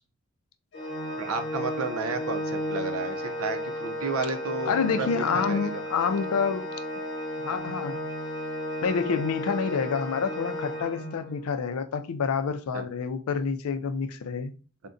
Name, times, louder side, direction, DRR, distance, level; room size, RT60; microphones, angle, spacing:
Organ, 0.7-11.5, equal, 55° left, 0.7 m, -34 dB
voice 1, 1.2-5.8 12.7-12.8, right 4 dB, 85° right, 0.5 m, -32 dB
voice 2, 4.7-6.7 7.4-8.0 8.8-14.5, left 5 dB, 85° left, 0.4 m, -28 dB
3.6 x 2.1 x 2.5 m
head